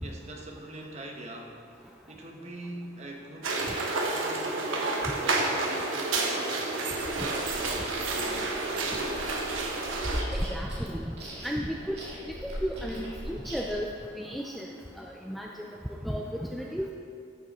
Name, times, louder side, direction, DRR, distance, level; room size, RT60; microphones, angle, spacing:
voice 1, 0.0-9.6, right 1 dB, 35° right, 0 dB, 1.0 m, -44 dB
sound 1, 3.4-10.2, right 3 dB, 85° right, 1.1 m, -30 dB
Chewing mastication, 6.9-13.8, equal, 55° right, 2.3 m, -38 dB
voice 2, 10.3-11.1 11.4-14.7 15.0-15.7 16.0-16.9, equal, ahead, -1 dB, 0.3 m, -34 dB
12.5 x 6.2 x 4.2 m, 2.4 s
head